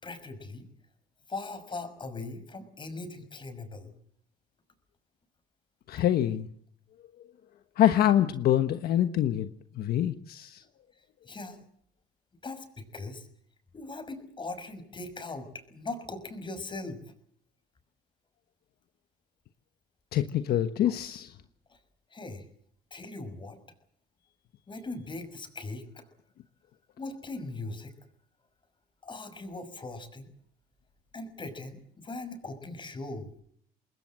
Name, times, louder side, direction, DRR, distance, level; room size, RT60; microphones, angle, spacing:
voice 1, 0.0-0.7 1.3-4.0 11.2-11.6 12.4-13.3 13.7-17.0 20.8-21.0 21.7-21.8 22.1-22.4 22.9-23.6 24.7-26.1 27.0-27.9 29.0-30.3 31.1-33.3, left 3 dB, 30° left, 9 dB, 6.0 m, -40 dB
voice 2, 5.9-6.5 7.8-9.5 9.8-10.6 20.1-21.3, left 11 dB, 65° left, 9 dB, 1.3 m, -25 dB
26.5 x 21.0 x 7.6 m, 0.64 s
cardioid pair, 110°, 17 cm